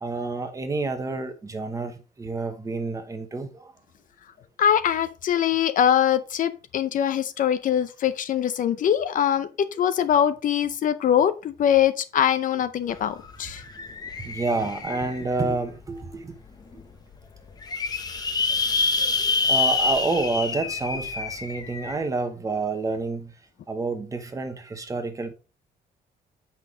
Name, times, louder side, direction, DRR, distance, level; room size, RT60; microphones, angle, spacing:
voice 1, 0.0-3.7 14.2-16.4 19.5-23.3 23.7-25.3, right 3 dB, 20° right, 1.0 m, -29 dB
voice 2, 4.6-9.5 9.8-13.6, left 9 dB, 50° left, 0.7 m, -22 dB
sound 1, 12.9-13.0 13.3-15.4 16.0-16.1 16.5-16.6 16.7-16.8 17.4-22.0, left 4 dB, 25° left, 0.9 m, -27 dB
8.1 x 5.6 x 3.8 m
cardioid pair, 180°, 17 cm